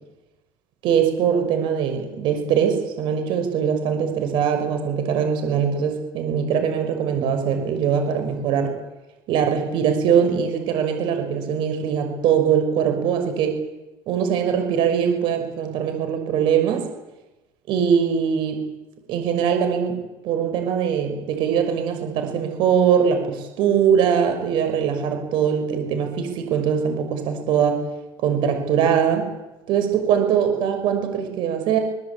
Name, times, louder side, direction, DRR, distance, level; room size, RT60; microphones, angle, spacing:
voice 1, 0.8-8.7 9.3-13.6 14.1-16.9 17.7-18.6 19.1-20.0 20.2-27.8 28.2-29.3 29.7-31.8, right 7 dB, 65° right, 6 dB, 5.8 m, -22 dB
23.0 x 20.5 x 8.6 m, 1.0 s
cardioid pair, 120°, 9 cm